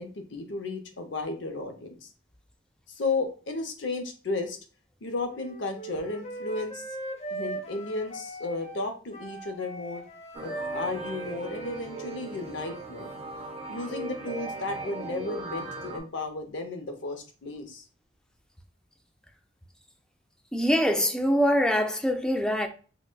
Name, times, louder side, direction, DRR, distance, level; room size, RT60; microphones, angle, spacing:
voice 1, 0.0-2.1 2.9-4.6 5.0-6.8 7.3-10.0 10.4-13.1 13.7-17.9, left 3 dB, 80° left, 0.7 m, -34 dB
Wind instrument woodwind instrument, 5.3-12.7, right 2 dB, 40° left, 0.6 m, -39 dB
sound 1, 10.3-16.0, right 1 dB, 40° right, 0.6 m, -38 dB
voice 2, 20.5-22.7, equal, 5° left, 0.3 m, -24 dB
4.7 x 2.2 x 2.2 m
head